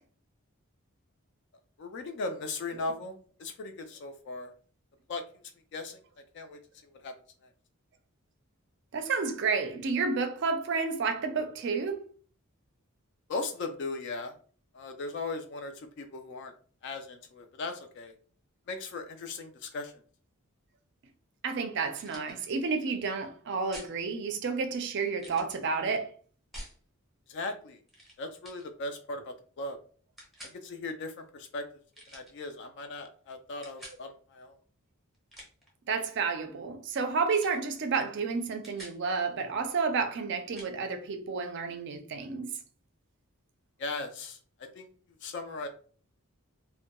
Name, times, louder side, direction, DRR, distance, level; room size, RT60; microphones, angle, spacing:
voice 1, 1.8-4.5 5.1-5.2 5.7-6.0 6.3-7.1 13.3-14.3 14.7-16.5 16.8-18.1 18.7-19.9 27.3-27.8 28.2-29.8 30.4-31.6 32.1-34.6 43.8-44.4 44.7-44.9 45.2-45.7, left 3 dB, 55° left, 0.3 m, -38 dB
voice 2, 8.9-12.0 21.4-26.1 35.9-42.5, right 4 dB, 50° right, 0.4 m, -30 dB
sound 1, 22.0-22.3 23.7-24.0 25.2-25.6 26.5-26.8 27.9-28.2 28.4-28.7 30.2-30.6 31.9-32.3 33.6-34.0 35.1-35.7 37.3-37.6 37.9-38.1 38.4-39.0 40.6-40.7, equal, ahead, 0.6 m, -47 dB
2.2 x 2.1 x 2.9 m
head